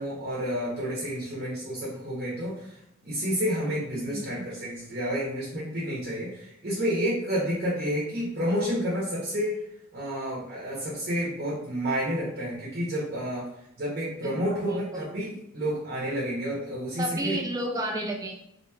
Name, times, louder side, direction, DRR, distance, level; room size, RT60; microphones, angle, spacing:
voice 1, 0.0-2.8 3.0-9.6 9.9-13.5 13.8-17.4, equal, 45° right, -7 dB, 0.8 m, -30 dB
voice 2, 14.2-15.0 17.0-18.3, right 1 dB, 15° right, 2 dB, 0.3 m, -32 dB
2.9 x 2.6 x 2.3 m, 0.78 s
head